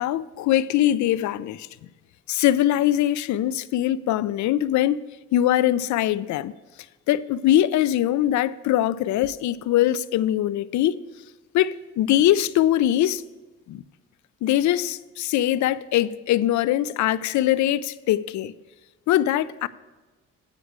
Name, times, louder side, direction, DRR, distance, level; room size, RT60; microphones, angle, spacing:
voice 1, 0.0-1.7 2.3-5.0 5.3-6.5 7.1-11.0 11.5-13.2 13.7-13.8 14.4-18.5 19.1-19.7, left 12 dB, 70° left, 0.4 m, -22 dB
9.6 x 4.8 x 7.9 m
cardioid pair, 90°, 30 cm